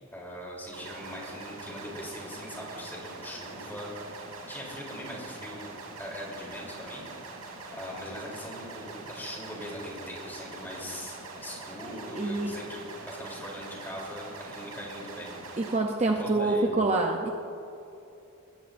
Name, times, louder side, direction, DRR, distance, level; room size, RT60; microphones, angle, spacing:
voice 1, 0.1-4.2 4.5-5.6 6.0-7.0 7.7-15.3 16.2-16.7, equal, 10° left, -3 dB, 3.4 m, -41 dB
sound 1, 0.7-15.8, right 3 dB, 90° right, 3.1 m, -43 dB
voice 2, 12.1-12.5 15.6-17.3, right 2 dB, 30° right, 2 dB, 0.7 m, -26 dB
21.0 x 15.5 x 2.6 m, 2.8 s
head